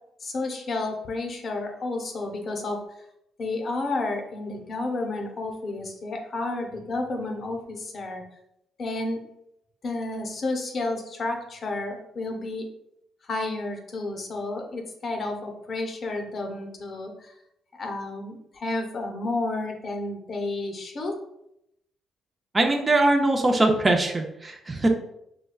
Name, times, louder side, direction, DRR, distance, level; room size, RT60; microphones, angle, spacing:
voice 1, 0.2-2.8 3.4-8.2 8.8-9.2 9.8-12.7 13.2-17.3 17.8-21.2, left 2 dB, 45° left, 3 dB, 0.6 m, -31 dB
voice 2, 22.5-24.9, right 2 dB, 25° right, 3 dB, 0.5 m, -21 dB
4.9 x 2.2 x 2.3 m, 0.79 s
cardioid pair, 90°, 0 cm